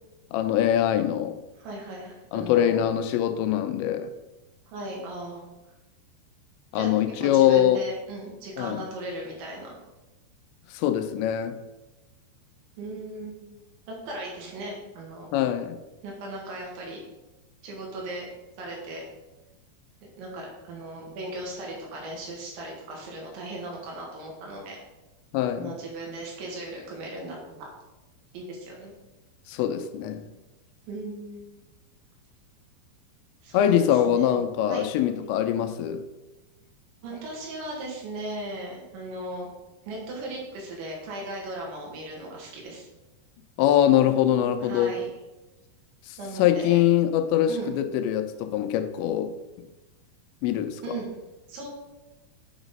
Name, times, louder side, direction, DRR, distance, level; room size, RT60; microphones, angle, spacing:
voice 1, 0.3-1.4 2.3-4.1 6.7-7.8 8.6-8.8 10.7-11.6 15.3-15.8 25.3-25.7 29.5-30.3 33.5-36.0 43.6-44.9 46.1-49.3 50.4-50.8, left 11 dB, 85° left, 2.9 m, -23 dB
voice 2, 1.6-2.8 4.7-5.4 6.7-9.8 12.8-13.6 13.9-15.3 16.0-17.0 17.6-18.3 18.6-19.0 20.2-24.8 25.6-27.7 28.3-28.9 30.9-31.5 33.4-34.3 34.7-34.8 37.0-39.5 39.8-42.9 44.6-45.1 46.2-46.8 47.5-47.7 50.8-51.1 51.5-51.7, right 2 dB, 90° right, 4.2 m, -37 dB
9.0 x 4.0 x 5.2 m
omnidirectional pair, 5.1 m